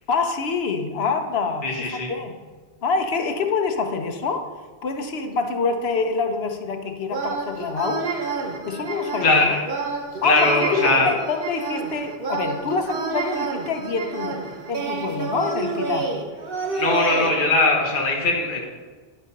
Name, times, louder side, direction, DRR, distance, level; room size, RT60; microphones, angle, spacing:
voice 1, 0.1-2.4 2.8-4.5 4.8-8.0 8.6-9.5 10.2-10.6 11.0-14.4 14.7-16.1, left 4 dB, 80° left, 6 dB, 1.1 m, -26 dB
voice 2, 1.6-2.1 9.2-9.6 10.2-11.1 16.7-18.6, left 2 dB, 55° left, -1 dB, 1.2 m, -20 dB
sound 1, 7.1-17.3, right 4 dB, 65° right, 1.2 m, -29 dB
10.5 x 4.2 x 5.2 m, 1.4 s
omnidirectional pair, 1.0 m